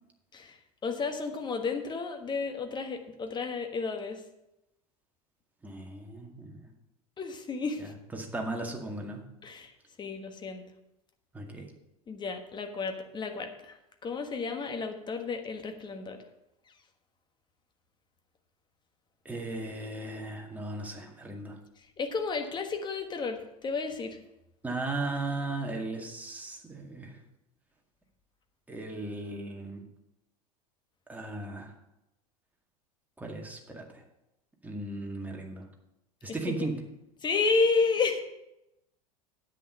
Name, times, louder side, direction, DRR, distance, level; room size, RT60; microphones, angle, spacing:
voice 1, 0.8-4.2 7.2-7.8 9.4-9.7 10.0-10.6 12.1-13.8 14.0-16.2 22.0-24.2 36.6-36.7 37.2-38.2, left 4 dB, 25° left, 6 dB, 1.4 m, -31 dB
voice 2, 5.6-6.6 7.8-9.2 11.3-11.7 19.3-21.6 24.6-27.2 28.7-29.8 31.1-31.7 33.2-34.0 34.6-35.7 36.2-36.8, right 2 dB, 10° right, 1 dB, 2.1 m, -36 dB
9.9 x 8.7 x 5.5 m, 0.88 s
figure-of-eight pair, 80°, 20 cm